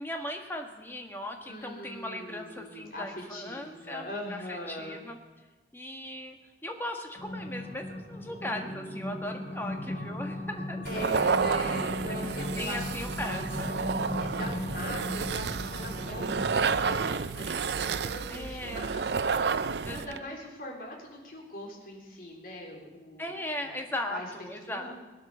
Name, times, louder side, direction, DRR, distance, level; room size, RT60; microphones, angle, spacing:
voice 1, 0.0-5.2 5.7-6.4 6.6-11.3 12.0-12.2 12.6-13.7 18.3-18.9 19.8-20.3 23.2-25.0, left 1 dB, 10° left, 3 dB, 1.7 m, -38 dB
voice 2, 1.5-5.0 10.8-12.9 14.0-14.1 14.4-23.8 24.1-24.3 24.7-25.0, left 1 dB, 55° left, -1 dB, 3.9 m, -41 dB
sound 1, 7.2-17.1, left 1 dB, 35° left, 6.6 m, -37 dB
sound 2, 10.8-20.2, right 5 dB, 75° right, 0.5 m, -30 dB
21.0 x 9.4 x 7.0 m, 1.2 s
head